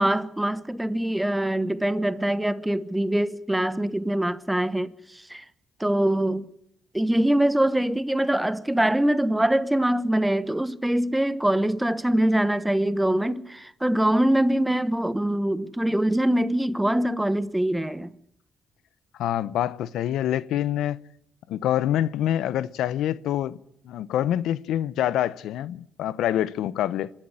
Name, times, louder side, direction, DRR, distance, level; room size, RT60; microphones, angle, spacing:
voice 1, 0.0-5.4 5.8-6.5 6.9-18.1, right 1 dB, 5° right, 1.1 m, -23 dB
voice 2, 19.2-21.0 21.5-23.6 23.8-27.1, left 11 dB, 85° left, 0.8 m, -26 dB
26.0 x 12.0 x 9.9 m
cardioid pair, 90°, 0 cm